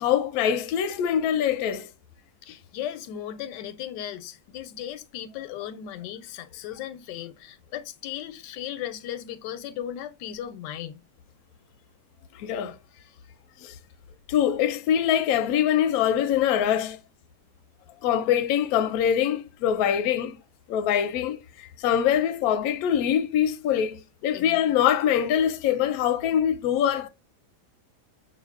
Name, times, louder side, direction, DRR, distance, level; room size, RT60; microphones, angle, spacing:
voice 1, 0.0-1.9 12.4-12.7 13.6-13.7 14.3-17.0 18.0-20.4 20.7-27.1, left 9 dB, 70° left, 0.9 m, -24 dB
voice 2, 2.4-11.0 24.3-24.6, left 11 dB, 85° left, 1.2 m, -36 dB
5.7 x 2.6 x 2.3 m
omnidirectional pair, 1.8 m